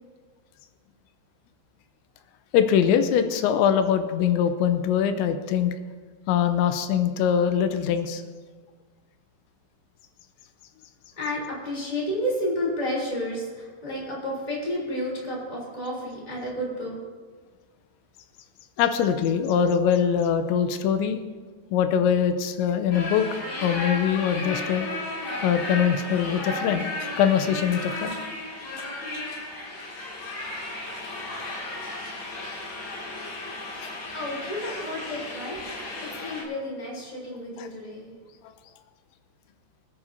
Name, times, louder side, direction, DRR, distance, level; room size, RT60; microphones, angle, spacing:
voice 1, 2.5-5.7 6.3-8.2 18.8-21.2 21.7-23.2 23.6-24.9 25.4-28.2 33.7-33.9 37.6-37.7, left 8 dB, 90° left, 8 dB, 3.0 m, -23 dB
voice 2, 11.2-16.9 33.8-38.1, left 1 dB, 10° left, -4 dB, 2.8 m, -31 dB
sound 1, 22.9-36.4, left 2 dB, 45° left, 3.1 m, -34 dB
24.0 x 9.8 x 2.8 m, 1.5 s
omnidirectional pair, 5.1 m